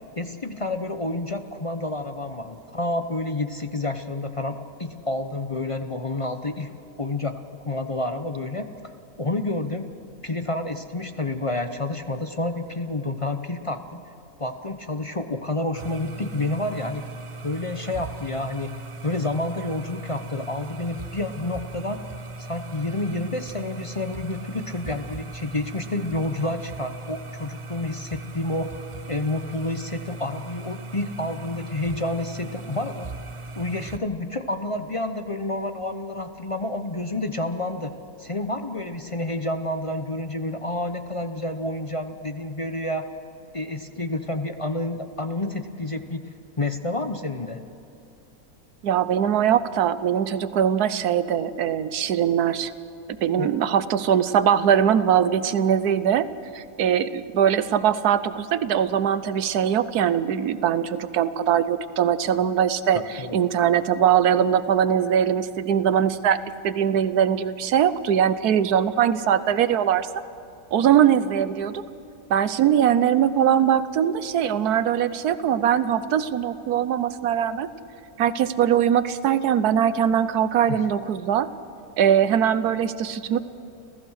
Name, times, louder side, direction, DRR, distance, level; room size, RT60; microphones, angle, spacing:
voice 1, 0.2-6.7 7.0-8.7 9.2-9.9 10.2-14.0 14.4-17.0 17.4-18.7 19.0-22.0 22.4-28.8 29.1-33.1 33.6-37.9 38.2-43.1 43.5-46.3 46.6-47.6 53.4-53.5 62.9-63.4 80.7-80.8, left 2 dB, 30° left, 7 dB, 0.7 m, -29 dB
sound 1, 15.7-34.0, right 3 dB, 40° right, 0.4 m, -38 dB
voice 2, 48.8-52.7 53.2-56.3 56.5-63.0 63.3-70.1 70.7-71.8 72.3-77.7 78.2-81.5 82.0-83.4, right 9 dB, 85° right, 13 dB, 1.3 m, -21 dB
30.0 x 15.0 x 6.5 m, 2.8 s
omnidirectional pair, 1.6 m